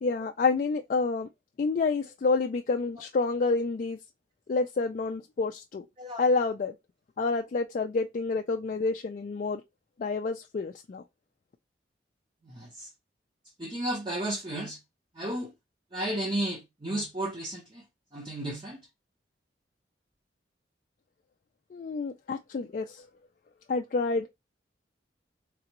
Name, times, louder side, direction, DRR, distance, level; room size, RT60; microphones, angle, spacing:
voice 1, 0.0-1.3 1.6-4.0 4.5-5.8 6.2-6.7 7.2-9.6 10.0-11.0 21.7-23.1 23.7-24.3, left 4 dB, 45° left, 0.3 m, -28 dB
voice 2, 12.5-12.9 13.6-14.8 15.2-15.5 15.9-17.8 18.1-18.8, right 1 dB, 25° right, 0.7 m, -33 dB
3.8 x 3.3 x 2.9 m
head